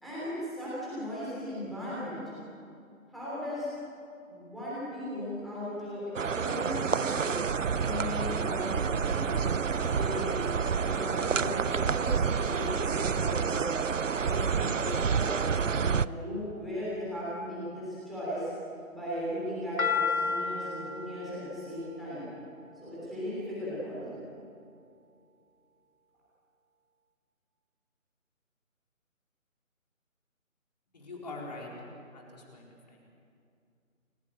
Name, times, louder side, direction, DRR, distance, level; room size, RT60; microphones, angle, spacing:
voice 1, 0.0-2.2 3.1-3.7 4.3-7.4 7.8-10.5 10.8-13.8 14.1-15.2 15.5-18.5 18.9-22.3 22.8-24.2, left 1 dB, ahead, -11 dB, 3.3 m, -37 dB
sound 1, 6.2-16.1, right 6 dB, 65° right, 0.7 m, -29 dB
sound 2, 19.8-23.0, left 5 dB, 80° left, 3.0 m, -33 dB
voice 2, 30.9-31.7 32.1-33.0, left 2 dB, 30° left, -2 dB, 4.3 m, -43 dB
29.5 x 17.5 x 8.9 m, 2.4 s
figure-of-eight pair, 175°, 42 cm